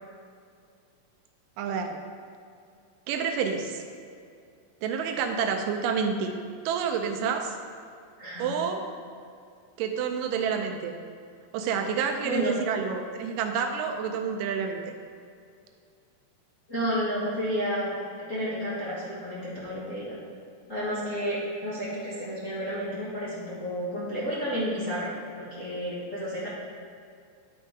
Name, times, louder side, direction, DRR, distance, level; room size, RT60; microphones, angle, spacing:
voice 1, 1.6-2.0 3.1-3.8 4.8-6.3 6.7-7.5 8.4-8.9 9.8-10.9 11.5-14.9, right 6 dB, 85° right, 4 dB, 2.2 m, -29 dB
voice 2, 16.7-17.9 18.3-20.2 20.7-26.5, equal, 40° left, -10 dB, 1.2 m, -31 dB
10.0 x 4.5 x 4.8 m, 2.3 s
omnidirectional pair, 3.9 m